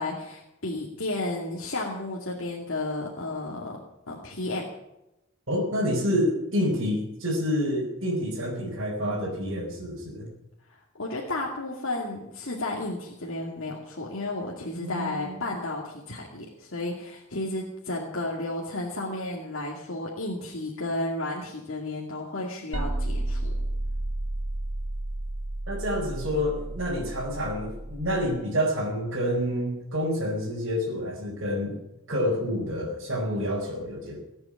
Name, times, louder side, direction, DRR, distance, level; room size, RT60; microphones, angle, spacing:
voice 1, 0.0-3.8 4.1-4.6 10.7-23.5, left 2 dB, 65° left, -2 dB, 2.4 m, -33 dB
voice 2, 5.5-10.3 14.8-15.4 25.7-31.8 32.1-34.2, equal, 55° right, -5 dB, 5.0 m, -28 dB
sound 1, 22.7-28.3, right 1 dB, 85° right, 1.6 m, -32 dB
18.0 x 8.9 x 8.7 m, 0.90 s
head